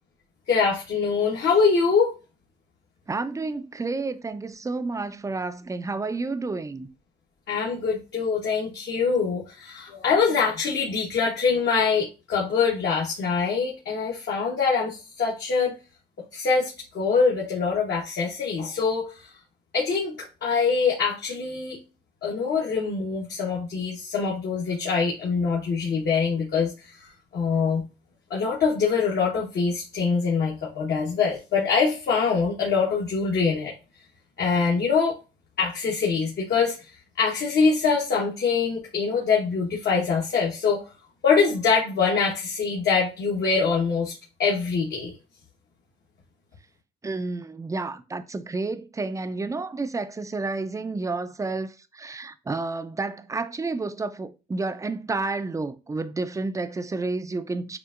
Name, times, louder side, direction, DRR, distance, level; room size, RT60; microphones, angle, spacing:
voice 1, 0.5-2.1 7.5-15.7 16.3-19.1 19.7-21.8 22.2-26.7 27.0-27.8 28.3-33.7 34.4-35.2 35.6-36.7 37.2-40.8 41.2-45.1, left 5 dB, 60° left, 1.2 m, -24 dB
voice 2, 3.1-6.9 47.0-57.8, right 3 dB, 15° right, 0.5 m, -30 dB
6.6 x 2.5 x 2.5 m
cardioid pair, 90°, 20 cm